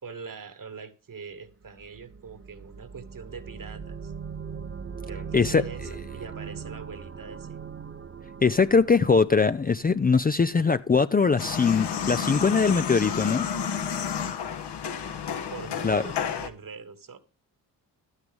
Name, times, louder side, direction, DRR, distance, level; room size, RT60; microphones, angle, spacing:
voice 1, 0.0-4.1 5.1-7.6 15.0-17.2, right 5 dB, 50° right, 1.7 m, -43 dB
sound 1, 1.6-10.5, right 6 dB, 30° right, 0.8 m, -40 dB
voice 2, 8.4-13.5 15.8-16.0, left 5 dB, 20° left, 0.5 m, -21 dB
sound 2, 11.4-16.5, left 7 dB, 70° left, 1.3 m, -31 dB
11.5 x 9.8 x 3.5 m
supercardioid pair, 55°, 43 cm